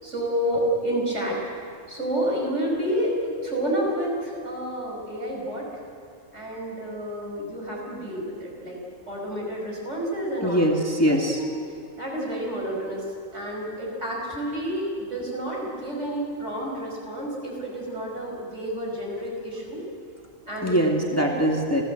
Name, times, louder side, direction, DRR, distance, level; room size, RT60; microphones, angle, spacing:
voice 1, 0.0-1.4 1.9-3.1 3.4-5.6 6.3-8.8 9.1-10.8 11.1-11.5 12.0-13.0 13.3-19.8 20.5-20.8 21.2-21.3, right 1 dB, 60° right, -2 dB, 6.2 m, -29 dB
voice 2, 10.4-11.4 20.6-21.8, equal, 10° left, 0 dB, 2.1 m, -22 dB
29.5 x 15.5 x 7.8 m, 2.3 s
omnidirectional pair, 1.4 m